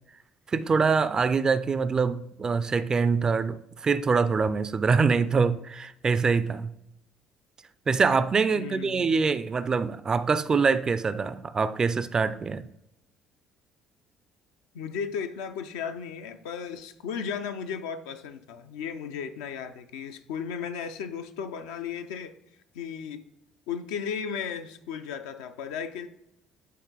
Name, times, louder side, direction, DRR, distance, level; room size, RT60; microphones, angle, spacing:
voice 1, 0.5-6.8 7.9-12.7, right 5 dB, 30° right, 0.4 m, -24 dB
voice 2, 8.5-9.1 14.7-22.3 22.7-23.2 23.7-26.1, left 7 dB, 65° left, 0.5 m, -35 dB
9.4 x 3.9 x 3.8 m
figure-of-eight pair, 50°, 2 cm